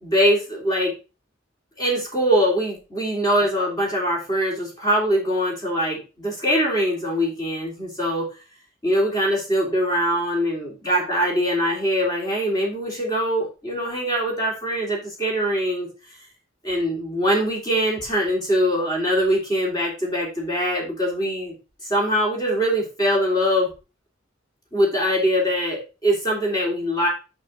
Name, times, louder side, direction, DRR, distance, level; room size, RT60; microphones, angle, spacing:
voice 1, 0.0-0.9 1.8-8.3 8.8-15.9 16.6-21.5 21.8-23.7 24.7-27.1, equal, 20° left, -2 dB, 3.3 m, -22 dB
6.4 x 6.4 x 4.0 m, 0.31 s
head